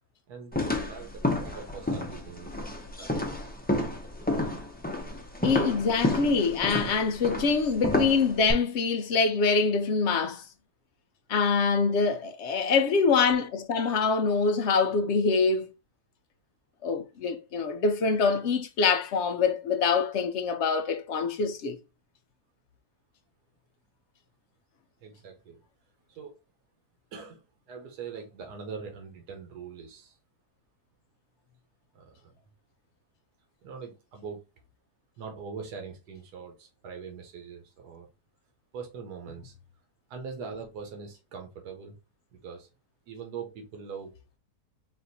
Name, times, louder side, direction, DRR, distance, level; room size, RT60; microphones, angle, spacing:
voice 1, 0.3-3.3 25.0-25.6 26.1-26.4 27.1-30.2 31.9-32.3 33.6-34.4 35.2-38.1 38.7-39.5 40.1-42.0 42.3-42.7 43.1-44.4, right 5 dB, 80° right, 1.5 m, -42 dB
sound 1, 0.5-8.5, left 1 dB, 15° left, 0.3 m, -30 dB
voice 2, 5.4-10.4 11.3-15.7 16.8-21.8, left 4 dB, 65° left, 0.7 m, -25 dB
4.2 x 2.5 x 4.0 m
omnidirectional pair, 1.7 m